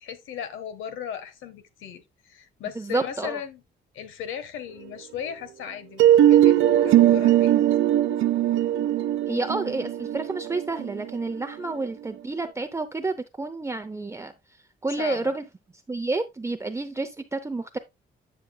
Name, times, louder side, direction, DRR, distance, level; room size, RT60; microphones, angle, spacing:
voice 1, 0.0-3.6 3.9-7.5 14.9-15.3, left 8 dB, 85° left, 1.3 m, -37 dB
voice 2, 2.8-3.4 9.3-14.3 14.8-15.4 15.9-17.8, right 3 dB, 15° right, 0.6 m, -29 dB
sound 1, 6.0-11.8, right 12 dB, 80° right, 0.8 m, -20 dB
9.9 x 6.0 x 2.2 m
cardioid pair, 90°, 20 cm